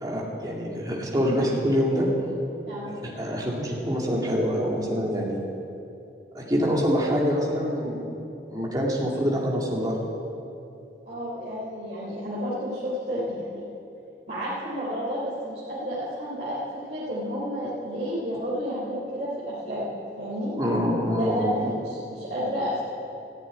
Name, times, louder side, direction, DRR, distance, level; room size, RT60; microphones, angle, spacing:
voice 1, 0.0-2.1 2.8-5.4 6.3-8.1 8.5-10.0 20.6-21.7, equal, 20° right, -3 dB, 2.4 m, -25 dB
voice 2, 2.7-3.0 11.1-13.6 14.3-16.6 16.9-20.5 21.2-22.8, equal, 45° right, -9 dB, 3.4 m, -31 dB
14.5 x 7.6 x 9.9 m, 2.7 s
head